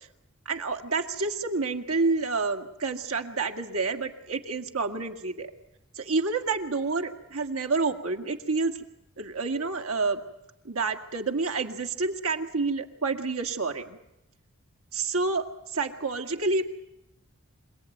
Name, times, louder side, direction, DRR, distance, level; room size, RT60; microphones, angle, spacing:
voice 1, 0.5-5.5 6.0-8.8 9.2-10.2 10.6-14.0 14.9-15.4 15.7-16.6, right 3 dB, 75° right, 4 dB, 2.0 m, -28 dB
27.0 x 17.5 x 9.3 m, 0.90 s
head